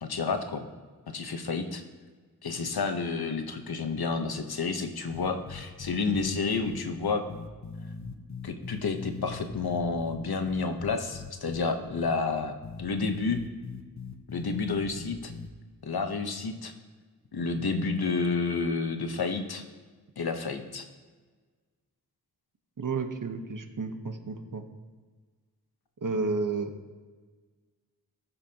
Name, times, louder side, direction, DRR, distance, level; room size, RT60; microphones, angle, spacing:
voice 1, 0.0-0.6 1.1-1.8 2.4-7.3 8.4-13.4 14.3-15.3 15.8-16.7 17.3-19.6 20.2-20.8, left 4 dB, 70° left, 6 dB, 1.0 m, -30 dB
sound 1, 5.1-6.3 6.6-6.8 7.3-10.1 10.5-11.6 12.0-12.1 12.6-15.5, left 5 dB, 45° left, 1.0 m, -41 dB
voice 2, 22.8-24.6 26.0-26.7, right 4 dB, 55° right, 6 dB, 1.0 m, -31 dB
17.0 x 7.0 x 2.9 m, 1.4 s
wide cardioid pair, 65°, 38 cm